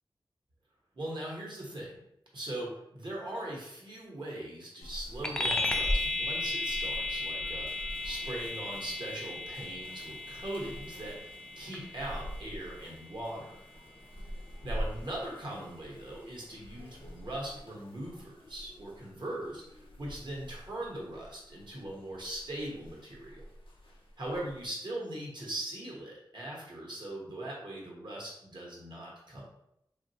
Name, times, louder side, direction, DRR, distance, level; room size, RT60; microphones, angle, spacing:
voice 1, 0.9-1.9 2.3-13.6 14.6-19.6 20.0-23.4 24.2-29.4, right 1 dB, 60° right, -4 dB, 1.0 m, -40 dB
sound 1, 4.8-24.7, equal, 80° left, 0.6 m, -46 dB
sound 2, 5.2-15.1, left 2 dB, 5° left, 0.3 m, -35 dB
3.0 x 2.4 x 2.7 m, 0.80 s
wide cardioid pair, 80°, 9 cm